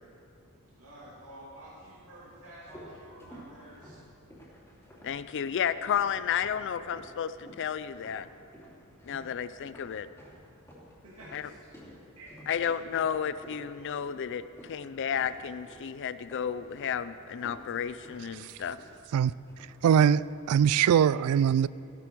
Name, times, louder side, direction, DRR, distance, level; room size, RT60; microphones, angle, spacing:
voice 1, 0.8-4.1 11.0-11.6 12.2-12.8, right 1 dB, 70° right, 2.5 m, -50 dB
sound 1, 2.3-7.2 7.5-8.2 8.5-14.8 15.1-15.9 16.3-17.0 17.3-19.2 19.5-19.8, equal, 10° left, 3.2 m, -52 dB
voice 2, 5.0-8.3 9.0-10.1 11.3-11.5 12.5-18.8, left 8 dB, 55° left, 0.4 m, -32 dB
voice 3, 19.8-20.2 20.5-21.7, right 8 dB, 85° right, 0.3 m, -21 dB
16.5 x 12.0 x 4.6 m
head